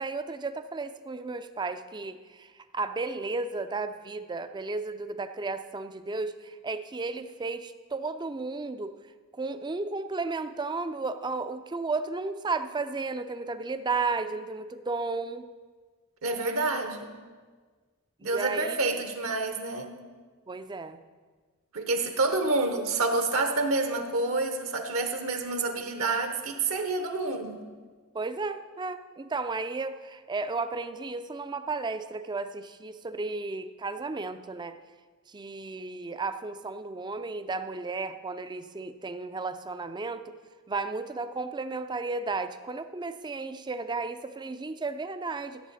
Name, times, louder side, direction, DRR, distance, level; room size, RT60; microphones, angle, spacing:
voice 1, 0.0-9.0 9.4-15.5 18.2-18.8 20.5-21.0 28.1-34.8 35.3-40.3 40.7-45.6, right 3 dB, 20° right, 10 dB, 0.4 m, -33 dB
voice 2, 16.2-17.1 18.2-19.9 21.7-27.6, right 3 dB, 65° right, 6 dB, 1.0 m, -28 dB
16.0 x 8.0 x 4.1 m, 1.5 s
head